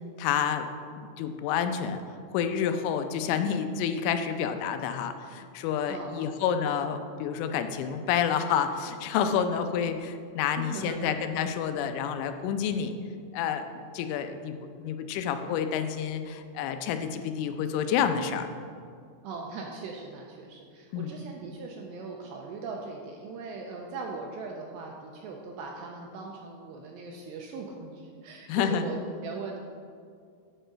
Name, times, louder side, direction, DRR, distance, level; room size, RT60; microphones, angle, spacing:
voice 1, 0.2-0.7 1.0-2.0 2.3-12.9 13.3-13.6 13.9-18.5 20.9-21.2 28.5-28.8, left 8 dB, 85° left, 8 dB, 3.1 m, -29 dB
voice 2, 5.9-6.5 10.6-11.1 19.2-29.6, right 4 dB, 90° right, 0 dB, 2.5 m, -39 dB
8.9 x 6.7 x 5.1 m, 2.2 s
omnidirectional pair, 5.5 m